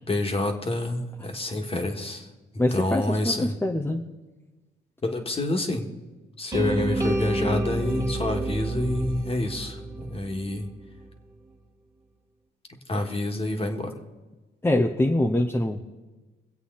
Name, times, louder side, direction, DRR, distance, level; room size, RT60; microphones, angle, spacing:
voice 1, 0.1-2.3 2.7-3.5 5.0-5.9 6.4-10.7 12.9-13.9, left 2 dB, 30° left, 4 dB, 1.8 m, -28 dB
voice 2, 2.6-4.0 14.6-15.8, left 1 dB, 10° left, 2 dB, 0.9 m, -24 dB
sound 1, 6.5-10.6, right 2 dB, 20° right, 2.2 m, -28 dB
23.5 x 8.1 x 4.0 m, 1.2 s
cardioid pair, 90°, 20 cm